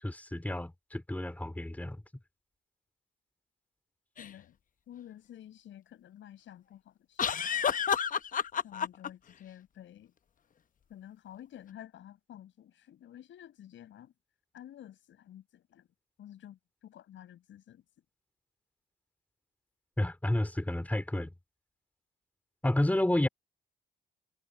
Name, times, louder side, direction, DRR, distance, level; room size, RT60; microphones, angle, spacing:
voice 1, 0.0-2.0 20.0-21.3 22.6-23.3, left 1 dB, 10° left, 3.7 m, -30 dB
voice 2, 4.2-4.6 4.9-7.3 8.6-10.1 10.9-14.1 14.5-15.9 16.2-17.8, left 11 dB, 75° left, 7.3 m, -51 dB
sound 1, 4.2-4.3 7.2-9.1, left 7 dB, 45° left, 0.8 m, -30 dB
cardioid pair, 90°, 20 cm